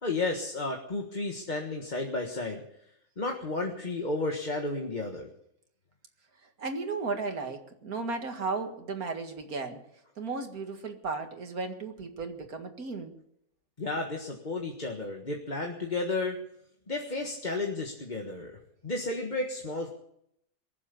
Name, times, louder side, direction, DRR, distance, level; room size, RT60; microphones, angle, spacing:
voice 1, 0.0-2.6 3.2-5.3 13.8-16.4 16.9-18.6 18.8-19.9, left 2 dB, 30° left, 2 dB, 1.6 m, -32 dB
voice 2, 6.6-9.8 10.2-13.1, right 4 dB, 85° right, 5 dB, 2.3 m, -35 dB
22.0 x 7.6 x 8.5 m, 0.74 s
omnidirectional pair, 1.5 m